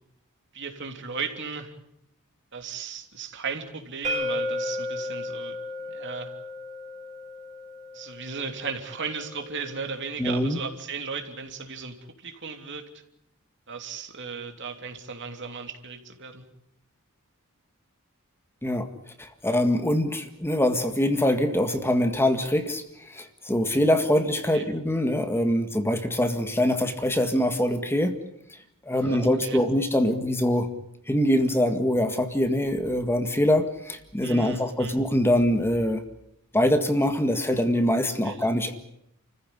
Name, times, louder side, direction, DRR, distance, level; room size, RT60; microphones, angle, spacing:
voice 1, 0.5-1.7 2.5-5.6 5.8-6.3 7.9-12.8 13.7-16.4 24.5-24.7 29.0-29.6 34.2-35.0 38.2-38.6, right 5 dB, 55° right, 5 dB, 3.1 m, -36 dB
sound 1, 4.0-9.8, left 1 dB, 35° right, 3.9 m, -34 dB
voice 2, 10.2-10.6 18.6-18.9 19.2-28.2 28.8-30.7 31.1-36.0 36.5-38.7, left 1 dB, 10° left, 7 dB, 1.8 m, -24 dB
29.5 x 15.0 x 9.9 m, 0.76 s
head